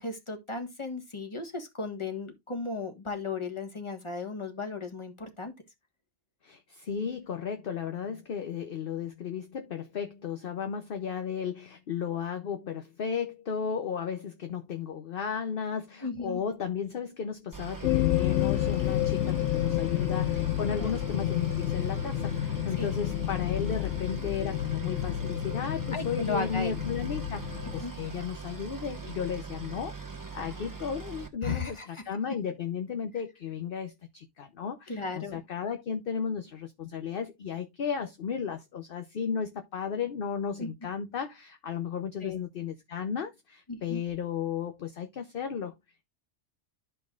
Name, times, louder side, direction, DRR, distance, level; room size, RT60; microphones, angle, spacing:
voice 1, 0.0-5.5 16.0-16.4 20.8-20.9 22.8-22.9 25.9-26.7 27.8-27.9 30.6-30.7 31.4-32.0 34.9-35.4 40.6-40.7 42.2-42.4 43.7-44.0, left 3 dB, 25° left, 1.6 m, -35 dB
voice 2, 6.4-45.7, left 7 dB, 55° left, 0.9 m, -34 dB
Boat Water vehicle, 17.5-31.3, right 5 dB, 15° right, 1.0 m, -42 dB
sound 1, 17.8-27.8, left 13 dB, 90° left, 1.0 m, -30 dB
12.5 x 5.6 x 2.4 m
omnidirectional pair, 1.2 m